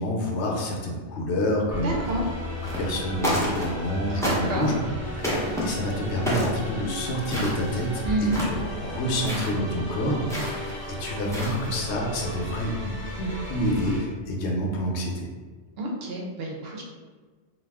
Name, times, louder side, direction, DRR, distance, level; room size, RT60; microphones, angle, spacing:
voice 1, 0.0-2.0 2.8-4.8 5.4-15.3, equal, 75° left, 0 dB, 0.9 m, -28 dB
sound 1, 1.7-14.0, left 1 dB, 30° right, 0.8 m, -35 dB
voice 2, 1.8-2.3 4.1-4.7 8.0-8.4 15.8-16.8, right 2 dB, 65° right, -1 dB, 0.8 m, -28 dB
sound 2, 2.6-2.9 3.2-3.9 4.2-4.7 5.2-5.6 6.3-6.6 7.2-7.9 8.2-8.6 9.2-9.5 10.3-10.7 11.2-11.8, equal, 5° left, 0.4 m, -29 dB
2.4 x 2.3 x 3.4 m, 1.4 s
omnidirectional pair, 1.2 m